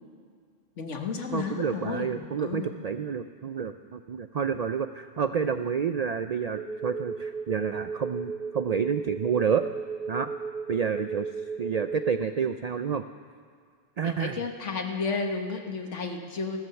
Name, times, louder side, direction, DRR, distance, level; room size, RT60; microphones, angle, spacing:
voice 1, 0.8-2.7 14.0-16.6, left 4 dB, 75° left, 4 dB, 1.7 m, -32 dB
voice 2, 1.3-9.7 10.1-10.3 10.7-11.3 11.6-13.0 14.0-14.4, right 6 dB, 70° right, 10 dB, 0.3 m, -29 dB
sound 1, 6.5-12.1, right 5 dB, 50° right, 2.8 m, -35 dB
16.0 x 12.5 x 7.0 m, 2.1 s
omnidirectional pair, 1.2 m